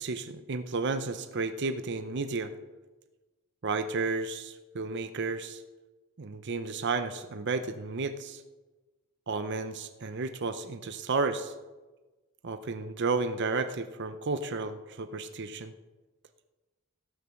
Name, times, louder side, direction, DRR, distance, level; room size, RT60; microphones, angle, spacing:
voice 1, 0.0-2.5 3.6-5.6 6.2-8.4 9.3-11.5 12.4-15.7, right 3 dB, 50° right, 10 dB, 0.7 m, -32 dB
16.5 x 6.8 x 6.4 m, 1.2 s
head